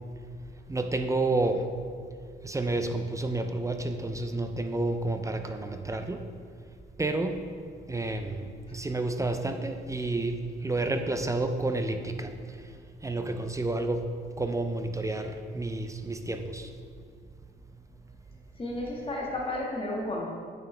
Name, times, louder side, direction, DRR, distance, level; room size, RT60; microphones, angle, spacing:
voice 1, 0.7-1.7 2.4-6.3 7.0-7.5 7.9-12.7 13.0-16.7, right 2 dB, 15° right, 7 dB, 0.5 m, -30 dB
voice 2, 18.6-20.2, left 1 dB, 25° left, -3 dB, 1.7 m, -32 dB
8.9 x 6.0 x 3.3 m, 2.1 s
cardioid pair, 90°, 20 cm